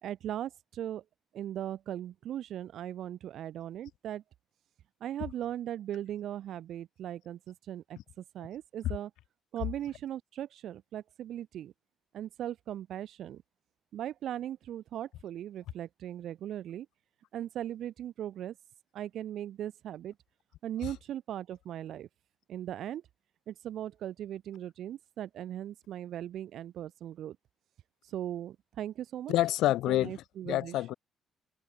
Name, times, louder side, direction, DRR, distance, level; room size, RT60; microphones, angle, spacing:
voice 1, 0.0-1.0 1.3-4.2 5.0-9.1 9.5-11.7 12.1-13.4 13.9-16.9 17.3-18.6 18.9-20.1 20.6-22.1 22.5-23.0 23.5-27.4 28.0-29.4 29.9-30.9, right 11 dB, 75° right, 2.9 m, -39 dB
voice 2, 29.3-30.9, left 15 dB, 90° left, 3.2 m, -28 dB
cardioid pair, 90°, 0 cm